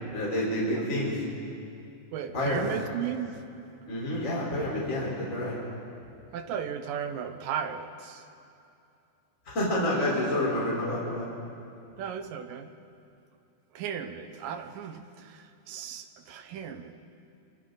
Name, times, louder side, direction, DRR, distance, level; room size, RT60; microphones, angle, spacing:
voice 1, 0.1-1.2 2.3-2.7 3.9-5.6 9.5-11.3, left 1 dB, 25° left, -5 dB, 4.3 m, -28 dB
voice 2, 2.1-3.4 6.3-8.3 12.0-12.7 13.7-16.9, right 8 dB, 90° right, 7 dB, 2.7 m, -36 dB
26.5 x 24.5 x 4.0 m, 2.6 s
omnidirectional pair, 3.8 m